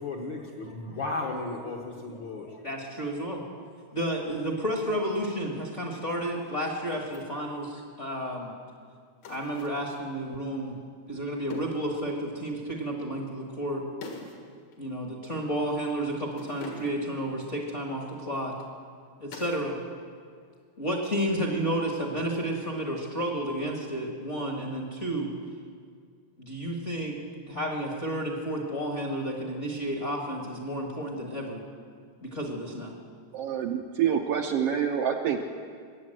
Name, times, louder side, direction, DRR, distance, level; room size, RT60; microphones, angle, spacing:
voice 1, 0.0-2.6 7.3-7.4, left 3 dB, 55° left, 0 dB, 1.4 m, -35 dB
voice 2, 2.6-3.4 3.9-8.5 9.3-10.8 11.1-13.8 14.8-18.5 19.2-19.8 20.8-25.3 26.4-27.2 27.5-31.6 32.2-32.9, right 1 dB, 40° left, -1 dB, 1.1 m, -31 dB
sound 1, 5.1-5.4 6.9-7.2 9.2-9.9 11.5-11.9 14.0-14.5 14.7-14.8 16.3-17.2 19.3-19.7 20.0-20.6 22.9-23.4, left 3 dB, 75° left, 3.1 m, -44 dB
voice 3, 33.3-35.4, right 8 dB, 75° right, 4 dB, 1.5 m, -27 dB
21.5 x 8.4 x 7.6 m, 2.1 s
omnidirectional pair, 3.3 m